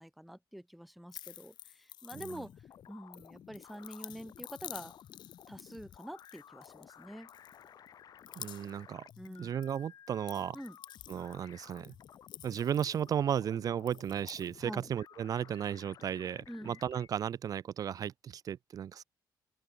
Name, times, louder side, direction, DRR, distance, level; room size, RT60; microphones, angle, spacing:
voice 1, 0.0-4.9 5.5-7.3 9.2-9.6 10.5-10.8 14.6-14.9 16.5-16.8, equal, ahead, 0.9 m, -46 dB
sound 1, 1.1-2.7 3.1-7.0 7.3-7.9 8.2-8.8 9.1-9.8 10.1-13.4 13.8-14.5, left 12 dB, 85° left, 3.4 m, -50 dB
sound 2, 2.3-17.1, left 9 dB, 60° left, 4.9 m, -55 dB
voice 2, 8.4-9.0 9.4-10.6 11.1-11.9 12.4-19.0, right 9 dB, 55° right, 0.9 m, -35 dB
open air
cardioid pair, 130°, 7 cm